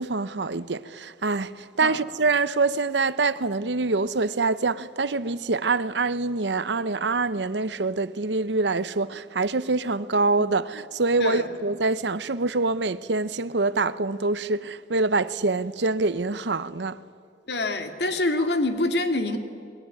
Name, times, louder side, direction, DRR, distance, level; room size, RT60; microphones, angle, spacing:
voice 1, 0.0-17.0, right 3 dB, 85° right, 0.9 m, -25 dB
voice 2, 11.2-11.5 17.5-19.4, left 2 dB, 75° left, 2.4 m, -25 dB
27.5 x 21.5 x 9.8 m
head